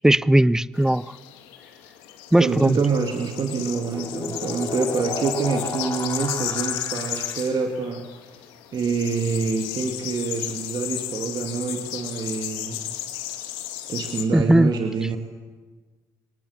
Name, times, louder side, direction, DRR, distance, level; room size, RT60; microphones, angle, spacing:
voice 1, 0.0-1.1 2.3-2.8 14.3-14.7, right 1 dB, 5° right, 0.6 m, -18 dB
sound 1, 0.8-14.2, left 13 dB, 80° left, 1.9 m, -34 dB
voice 2, 2.4-8.1 8.7-12.8 13.9-15.2, right 5 dB, 50° right, 2.3 m, -26 dB
sound 2, 3.1-7.7, left 4 dB, 40° left, 3.8 m, -34 dB
25.5 x 19.0 x 7.2 m
hypercardioid pair, 60°, 9 cm